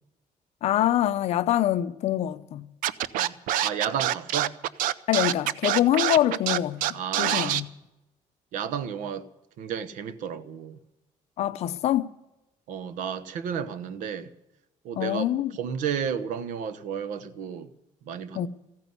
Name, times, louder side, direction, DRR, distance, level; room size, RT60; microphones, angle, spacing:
voice 1, 0.6-2.7 5.1-7.7 11.4-12.1 15.0-15.5 18.3-18.5, left 12 dB, 50° left, 0.7 m, -25 dB
Scratching (performance technique), 2.8-7.6, right 12 dB, 90° right, 0.6 m, -25 dB
voice 2, 3.6-4.5 6.9-7.6 8.5-9.3 9.6-10.8 12.7-14.3 14.8-15.3 15.5-17.7 18.1-18.5, right 7 dB, 70° right, 1.1 m, -32 dB
15.0 x 9.6 x 9.5 m
cardioid pair, 175°, 14 cm